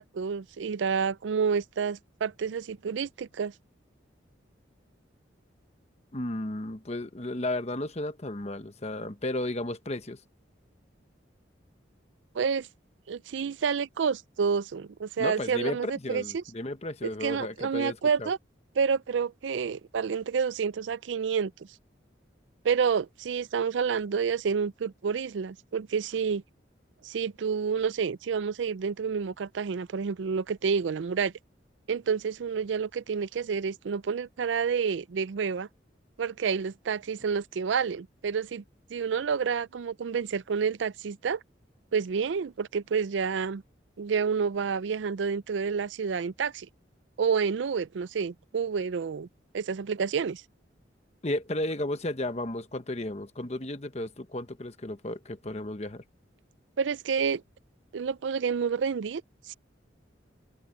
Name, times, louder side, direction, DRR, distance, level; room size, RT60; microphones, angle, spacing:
voice 1, 0.0-3.5 12.3-12.7 13.1-16.4 17.0-18.4 18.8-21.5 22.6-26.4 27.0-31.3 31.9-35.7 36.2-38.6 38.9-41.4 41.9-43.6 44.0-46.7 47.2-49.3 49.5-50.4 56.8-57.4 57.9-59.2 59.5-59.6, right 6 dB, 80° right, 0.4 m, -29 dB
voice 2, 6.1-10.2 15.2-18.3 51.2-56.0, left 1 dB, 35° left, 1.1 m, -33 dB
head